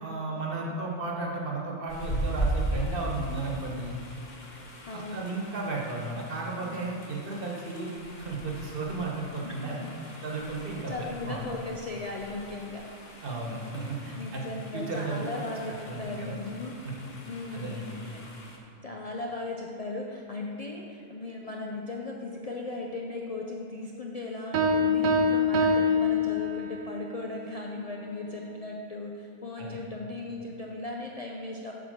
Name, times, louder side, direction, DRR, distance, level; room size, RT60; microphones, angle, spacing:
voice 1, 0.0-3.9 4.9-7.9 8.2-9.8 10.2-11.4 13.2-14.4 14.7-15.2 15.9-16.3 17.5-18.0 29.6-29.8, right 3 dB, 45° right, -2 dB, 1.3 m, -34 dB
sound 1, 1.9-18.6, right 1 dB, 40° left, 0.9 m, -39 dB
voice 2, 4.9-5.3 9.4-9.9 10.9-12.8 14.2-16.7 17.3-17.8 18.0-18.2 18.8-31.7, left 2 dB, 80° left, -1 dB, 0.3 m, -37 dB
sound 2, 24.5-26.9, left 2 dB, 75° right, 1.0 m, -24 dB
7.7 x 4.4 x 6.5 m, 2.9 s
omnidirectional pair, 1.4 m